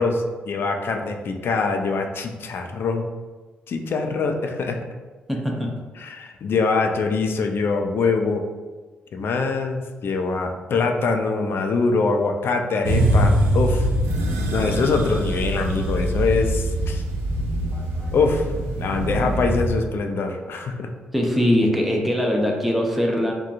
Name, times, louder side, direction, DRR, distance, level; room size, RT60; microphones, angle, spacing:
voice 1, 0.0-3.0 3.7-4.8 6.0-8.4 9.1-13.9 14.5-17.0 18.1-18.5 18.8-20.9, left 4 dB, 55° left, 4 dB, 0.4 m, -23 dB
voice 2, 5.3-5.7 17.7-18.1 21.1-23.3, equal, ahead, 0 dB, 0.6 m, -22 dB
sound 1, 12.8-19.7, right 1 dB, 75° right, 0.5 m, -23 dB
2.8 x 2.2 x 2.5 m, 1.3 s
hypercardioid pair, 40°, 5 cm